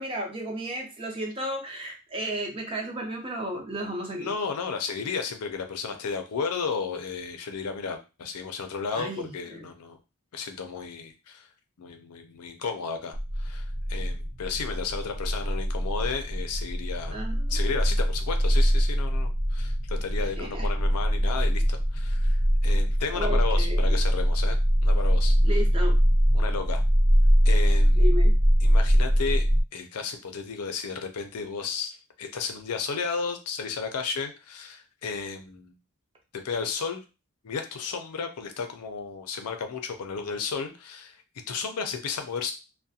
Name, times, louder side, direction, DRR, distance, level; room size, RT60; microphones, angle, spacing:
voice 1, 0.0-4.3 8.9-9.7 17.1-17.6 20.2-20.7 23.1-24.0 25.4-26.0 27.9-28.3, equal, 25° right, 1 dB, 0.6 m, -34 dB
voice 2, 4.2-10.0 10.3-11.5 11.8-17.2 17.5-25.4 26.3-26.8 27.4-28.1 28.6-29.4 29.7-35.7 36.4-37.0 37.4-41.2 41.5-42.5, left 5 dB, 90° left, 6 dB, 0.5 m, -33 dB
sound 1, 13.1-29.6, equal, 35° left, 0.6 m, -23 dB
2.4 x 2.1 x 2.7 m, 0.29 s
head